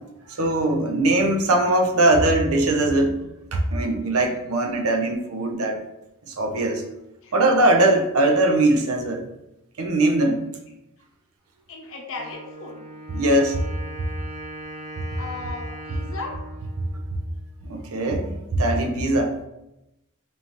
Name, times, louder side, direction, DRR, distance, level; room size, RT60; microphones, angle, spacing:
voice 1, 0.3-3.2 3.5-5.8 6.3-6.8 7.3-9.3 9.8-10.4 13.1-13.6 17.7-19.4, right 1 dB, 70° right, 3 dB, 0.7 m, -21 dB
voice 2, 11.7-12.8 15.2-16.4, left 3 dB, 65° left, 0 dB, 0.8 m, -36 dB
Wind instrument woodwind instrument, 12.1-17.9, right 1 dB, 35° right, 0.7 m, -40 dB
5.4 x 2.5 x 2.9 m, 0.91 s
head